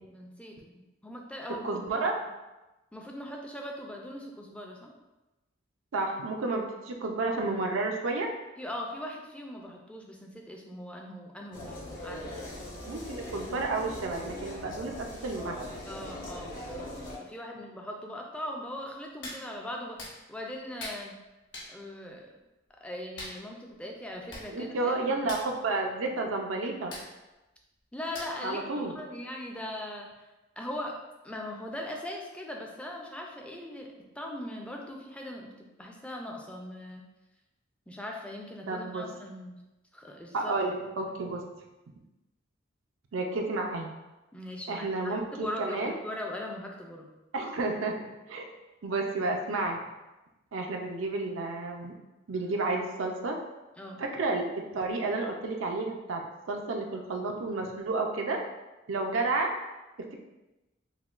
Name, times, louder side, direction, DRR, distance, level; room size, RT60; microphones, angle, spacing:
voice 1, 0.1-2.0 2.9-4.9 8.6-12.8 15.9-16.9 17.2-20.0 20.3-21.1 21.7-22.3 22.8-25.3 27.9-30.1 30.6-35.5 35.8-37.0 37.9-39.6 39.9-40.5 44.3-47.1 53.8-54.0, left 1 dB, 5° left, 0 dB, 0.4 m, -40 dB
voice 2, 1.6-2.1 5.9-8.3 12.9-15.6 24.5-26.9 28.4-28.9 38.7-39.0 40.3-41.4 43.1-43.9 44.7-45.9 47.3-47.9 48.3-48.5 48.8-49.8 50.5-51.9 52.3-53.4 54.0-54.5 54.7-56.2 56.5-58.4 58.9-59.5, right 3 dB, 80° right, 2 dB, 0.5 m, -31 dB
sound 1, 11.5-17.2, left 1 dB, 45° left, 0.9 m, -40 dB
Hands, 19.2-19.4 20.0-20.1 20.8-21.0 21.5-21.7 23.2-23.4 24.0-24.1 24.3-24.5 24.7-24.9 25.2-25.5 26.9-27.1 28.1-28.5 28.9-29.0, left 2 dB, 65° left, 1.0 m, -40 dB
5.7 x 2.2 x 2.4 m, 1.0 s
head